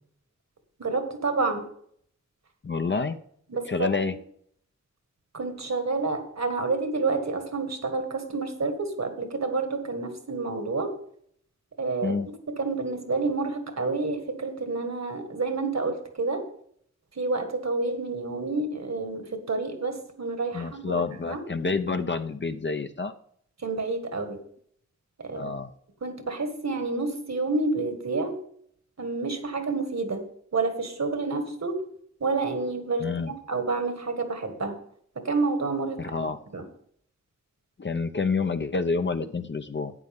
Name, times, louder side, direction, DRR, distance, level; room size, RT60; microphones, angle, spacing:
voice 1, 0.8-1.6 3.5-4.0 5.3-10.9 11.8-12.2 12.6-16.4 17.2-21.4 23.6-24.4 25.2-25.5 26.0-28.4 29.0-30.2 30.5-31.8 32.2-34.8 35.2-36.3 36.5-36.6, right 3 dB, 65° right, 6 dB, 1.8 m, -29 dB
voice 2, 2.6-3.2 3.7-4.2 12.0-12.3 20.5-23.1 25.3-25.7 33.0-33.3 36.0-36.4 37.8-39.9, left 4 dB, 40° left, 8 dB, 0.7 m, -28 dB
12.0 x 8.5 x 3.6 m, 0.64 s
cardioid pair, 45°, 29 cm